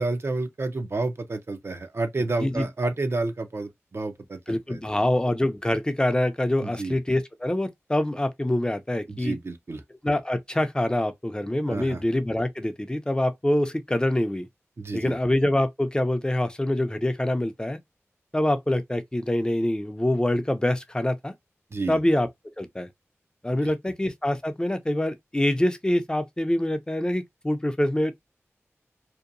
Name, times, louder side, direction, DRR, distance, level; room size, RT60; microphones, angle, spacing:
voice 1, 0.0-4.8 6.6-7.0 9.1-9.8 11.7-12.0 14.8-15.2 21.7-22.0, right 3 dB, 55° right, 0.6 m, -30 dB
voice 2, 4.5-9.4 10.0-14.5 14.9-17.8 18.3-21.3 21.9-22.3 22.6-22.9 23.4-28.1, left 1 dB, 15° left, 0.5 m, -25 dB
2.8 x 2.2 x 2.5 m
wide cardioid pair, 50°, 5 cm